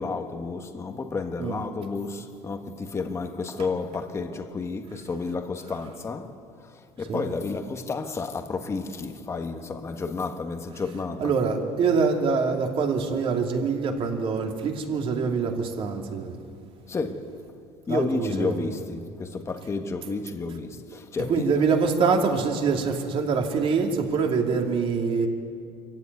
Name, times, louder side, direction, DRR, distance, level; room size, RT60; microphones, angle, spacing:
voice 1, 0.0-11.3 16.8-17.4 17.9-21.6, left 4 dB, 20° left, 1.4 m, -31 dB
voice 2, 11.2-16.3 17.9-18.7 21.3-25.3, right 5 dB, 40° right, 2.7 m, -25 dB
25.5 x 15.0 x 9.6 m
cardioid pair, 140°, 13 cm